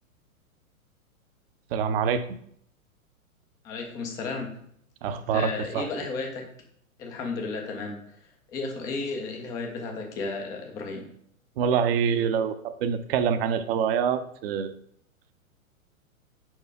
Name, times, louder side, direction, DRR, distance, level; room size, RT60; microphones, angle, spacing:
voice 1, 1.7-2.2 5.0-5.9 11.6-14.7, right 7 dB, 45° right, 10 dB, 0.6 m, -25 dB
voice 2, 3.6-4.6 5.3-6.4 7.0-11.1, left 3 dB, 10° left, 2 dB, 0.3 m, -33 dB
4.8 x 4.5 x 4.6 m, 0.67 s
hypercardioid pair, 115°, 42 cm